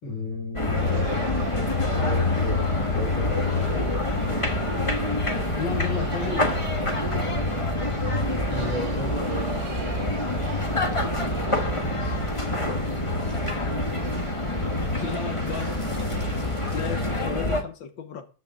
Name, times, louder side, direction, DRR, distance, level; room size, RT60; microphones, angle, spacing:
voice 1, 0.0-1.5 1.9-3.7 8.5-9.5, left 2 dB, 90° left, 6.0 m, -34 dB
sound 1, 0.6-17.6, left 2 dB, 20° left, 1.2 m, -26 dB
sound 2, 0.7-17.2, right 6 dB, 60° right, 2.1 m, -40 dB
sound 3, 5.5-13.7, left 1 dB, 20° right, 5.0 m, -45 dB
voice 2, 5.6-6.5 11.8-12.2 14.9-15.8 16.7-18.3, left 7 dB, 75° left, 1.9 m, -34 dB
13.0 x 8.2 x 3.6 m
omnidirectional pair, 2.1 m